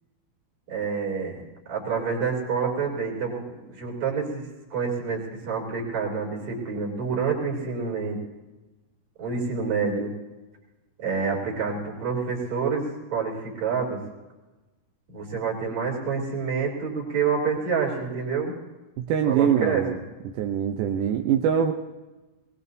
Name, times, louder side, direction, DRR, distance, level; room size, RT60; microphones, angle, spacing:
voice 1, 0.7-1.4 1.7-4.4 4.7-8.2 9.2-10.1 11.0-14.0 15.1-18.5 19.2-19.8, right 5 dB, 50° right, -2 dB, 4.4 m, -28 dB
voice 2, 19.0-20.0 20.3-21.7, right 8 dB, 75° right, 3 dB, 2.0 m, -23 dB
21.5 x 20.0 x 2.7 m, 1.1 s
omnidirectional pair, 4.2 m